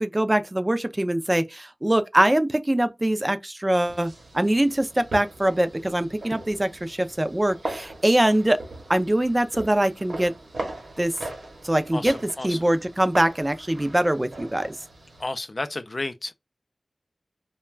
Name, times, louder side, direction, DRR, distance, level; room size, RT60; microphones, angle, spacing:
voice 1, 0.0-8.6 8.9-10.3 11.0-11.1 11.6-12.1 12.4-14.8, right 1 dB, 25° right, 0.4 m, -23 dB
sound 1, 3.8-15.2, right 2 dB, 85° right, 0.8 m, -40 dB
voice 2, 11.9-12.6 15.2-16.3, left 2 dB, 50° left, 0.4 m, -32 dB
2.3 x 2.1 x 3.2 m
wide cardioid pair, 50°, 0 cm